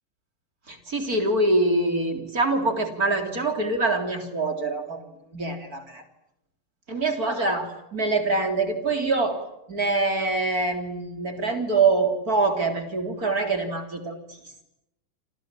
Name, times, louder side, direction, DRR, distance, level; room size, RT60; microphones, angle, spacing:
voice 1, 0.7-5.0 5.3-6.0 6.9-9.4 9.7-14.4, right 3 dB, 25° right, 7 dB, 3.4 m, -25 dB
28.0 x 28.0 x 7.5 m, 0.85 s
omnidirectional pair, 4.7 m